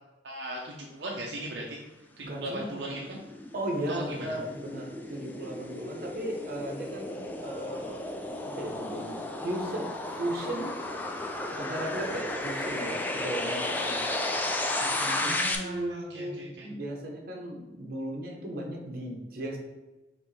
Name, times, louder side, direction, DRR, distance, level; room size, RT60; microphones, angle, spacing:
voice 1, 0.2-1.8 2.2-3.2 3.9-4.4 15.1-16.7, right 1 dB, 80° right, -2 dB, 0.6 m, -38 dB
voice 2, 2.2-2.8 3.5-7.9 8.4-10.7 11.5-14.0 14.8-15.3 15.6-19.6, right 1 dB, 55° right, 0 dB, 0.9 m, -36 dB
sound 1, 2.4-15.6, left 2 dB, 10° left, 0.4 m, -33 dB
5.1 x 3.2 x 3.2 m, 1.1 s
head